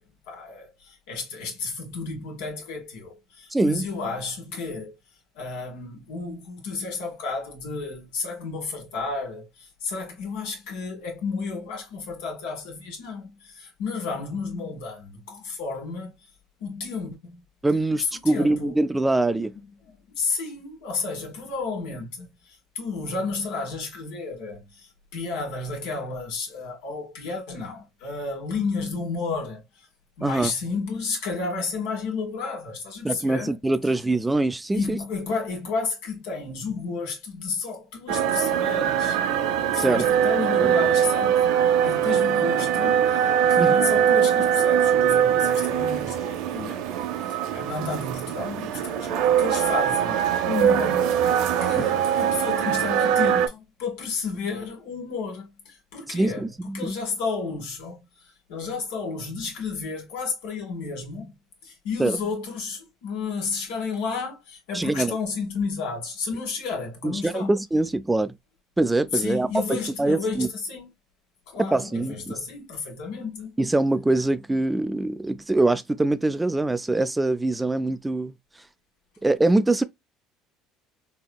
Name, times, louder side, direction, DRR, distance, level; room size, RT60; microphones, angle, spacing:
voice 1, 0.3-4.9 5.3-16.1 16.6-17.4 18.0-18.8 19.8-29.9 30.2-33.6 34.7-39.2 39.7-46.8 47.3-61.3 61.6-67.6 69.1-70.9 71.5-73.6, left 4 dB, 80° left, 1.6 m, -32 dB
voice 2, 3.5-3.9 17.6-19.5 30.2-30.5 33.0-35.0 39.8-40.0 40.6-40.7 43.6-43.8 56.1-56.9 62.0-62.2 64.7-65.1 67.0-68.3 68.8-70.5 71.6-72.3 73.6-78.3 79.2-79.8, right 2 dB, 10° right, 0.3 m, -23 dB
sound 1, 38.1-53.5, right 9 dB, 75° right, 0.6 m, -22 dB
4.2 x 2.8 x 2.2 m
supercardioid pair, 95°, 0 cm